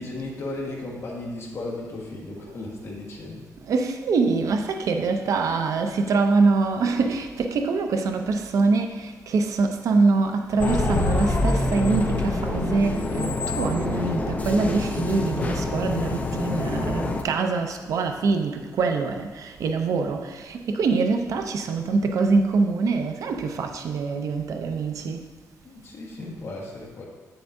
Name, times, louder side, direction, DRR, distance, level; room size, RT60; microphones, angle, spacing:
voice 1, 0.0-3.4 25.6-27.0, left 2 dB, 45° left, -2 dB, 1.4 m, -35 dB
voice 2, 3.7-25.2, right 4 dB, 65° right, 6 dB, 0.5 m, -24 dB
sound 1, 10.6-17.2, left 2 dB, 25° left, 0.5 m, -26 dB
7.9 x 6.9 x 2.6 m, 1.3 s
wide cardioid pair, 160°, 6 cm